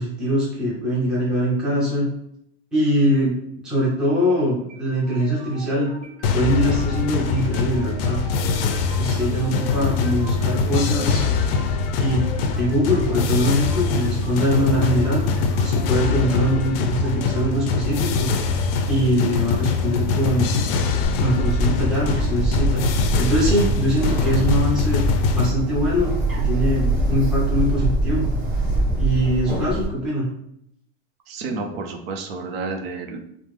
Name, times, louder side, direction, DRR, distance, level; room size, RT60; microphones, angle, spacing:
voice 1, 0.0-2.1 2.7-5.9 6.3-8.2 9.0-11.2 12.0-12.2 12.6-15.2 15.6-18.3 18.9-20.6 21.2-22.8 23.2-25.0 25.3-28.3 29.0-30.3, equal, ahead, -8 dB, 0.6 m, -22 dB
sound 1, 4.7-20.7, right 1 dB, 55° right, 1.3 m, -41 dB
sound 2, 6.2-25.5, left 5 dB, 65° left, 0.4 m, -23 dB
Bird, 21.0-29.8, right 1 dB, 25° right, 1.0 m, -24 dB
voice 2, 31.3-33.2, right 4 dB, 70° right, 4 dB, 0.6 m, -30 dB
3.4 x 2.0 x 3.1 m, 0.75 s
supercardioid pair, 165°, 31 cm